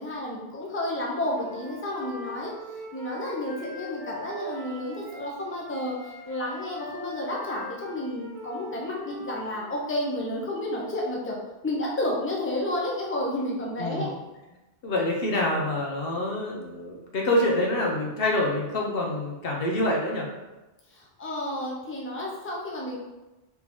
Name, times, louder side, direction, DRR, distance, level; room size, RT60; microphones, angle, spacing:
voice 1, 0.0-2.5 2.9-11.4 11.6-14.1 20.9-23.0, left 1 dB, 15° left, -3 dB, 0.7 m, -31 dB
Wind instrument woodwind instrument, 1.3-5.3 5.7-9.9, left 1 dB, 50° left, 1.7 m, -42 dB
voice 2, 13.8-14.1 14.8-20.3, left 1 dB, 65° left, -1 dB, 0.9 m, -26 dB
3.8 x 3.0 x 4.1 m, 1.0 s
omnidirectional pair, 1.1 m